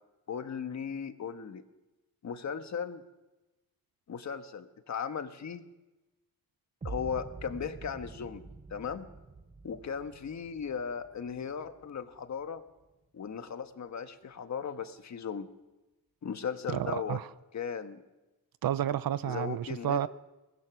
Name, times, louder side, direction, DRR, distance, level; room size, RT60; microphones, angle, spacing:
voice 1, 0.3-1.6 2.2-3.0 4.1-5.7 6.8-8.4 8.7-9.1 9.6-12.6 13.1-15.5 16.2-17.2 17.5-18.0 19.3-20.0, left 6 dB, 50° left, 1.5 m, -37 dB
sound 1, 6.8-12.8, right 3 dB, 20° right, 0.8 m, -47 dB
voice 2, 16.7-17.3 18.6-20.1, right 11 dB, 70° right, 0.8 m, -31 dB
23.5 x 19.0 x 6.2 m
wide cardioid pair, 140°, 36 cm